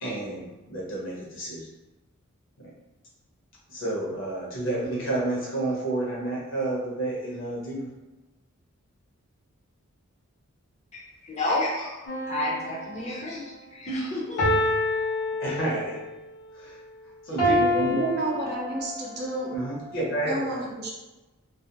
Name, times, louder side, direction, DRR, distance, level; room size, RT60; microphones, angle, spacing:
voice 1, 0.0-1.7 2.6-2.7 3.7-7.9 15.4-16.0 16.5-16.8 17.2-18.1 19.5-20.6, right 2 dB, 60° left, -4 dB, 0.8 m, -30 dB
voice 2, 10.9-14.6, left 1 dB, 30° left, -4 dB, 0.6 m, -31 dB
sound 1, 12.1-13.4 14.4-16.1 17.4-19.1 19.7-19.9, left 1 dB, 90° left, 0.9 m, -27 dB
voice 3, 17.9-19.5 20.3-20.9, right 1 dB, 50° right, -2 dB, 0.5 m, -30 dB
2.4 x 2.1 x 2.7 m, 1.1 s
head